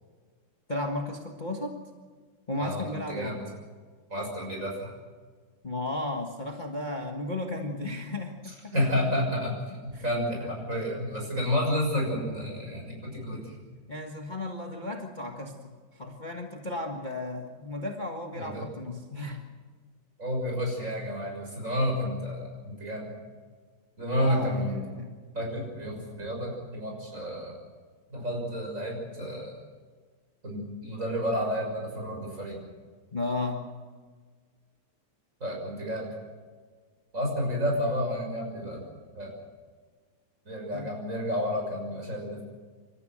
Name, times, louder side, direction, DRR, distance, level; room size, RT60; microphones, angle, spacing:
voice 1, 0.7-1.7 2.5-3.3 5.6-8.6 9.9-10.0 13.9-19.4 24.2-25.1 33.1-33.7 40.7-40.9, left 2 dB, 25° left, 2 dB, 1.6 m, -34 dB
voice 2, 2.6-3.4 4.1-4.9 8.4-13.6 18.3-18.7 20.2-23.1 24.0-24.8 25.3-27.6 28.1-29.6 30.4-32.6 35.4-36.1 37.1-38.8 39.1-39.3 40.5-42.4, equal, 40° right, 0 dB, 7.0 m, -30 dB
27.5 x 14.0 x 7.9 m, 1.5 s
omnidirectional pair, 2.1 m